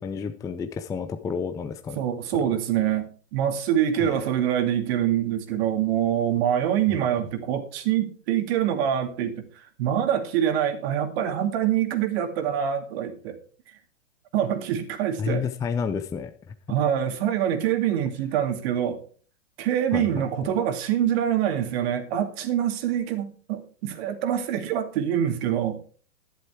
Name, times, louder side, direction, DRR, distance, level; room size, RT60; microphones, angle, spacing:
voice 1, 0.0-2.0 3.9-4.3 15.2-16.3 19.9-20.3, left 6 dB, 10° left, 8 dB, 0.5 m, -30 dB
voice 2, 2.0-3.0 3.3-9.4 9.8-13.4 14.3-15.4 16.7-19.0 19.6-25.8, right 10 dB, 50° right, 7 dB, 2.5 m, -25 dB
11.5 x 11.0 x 4.6 m, 0.42 s
hypercardioid pair, 125°, 39 cm